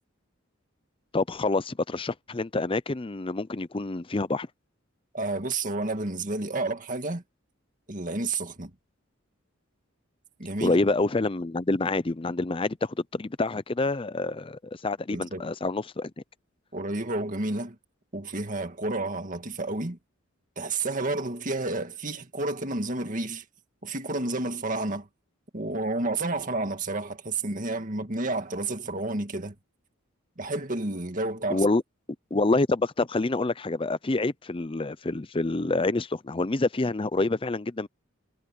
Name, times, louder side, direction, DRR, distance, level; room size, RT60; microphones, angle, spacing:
voice 1, 1.1-4.5 10.6-16.1 31.5-31.8 32.3-37.9, left 2 dB, 25° left, 0.6 m, -27 dB
voice 2, 5.1-7.2 7.9-8.7 10.4-10.8 15.1-15.5 16.7-17.8 18.1-20.0 20.6-23.4 23.8-25.1 25.5-29.5 30.4-31.6, right 2 dB, 40° right, 2.0 m, -30 dB
head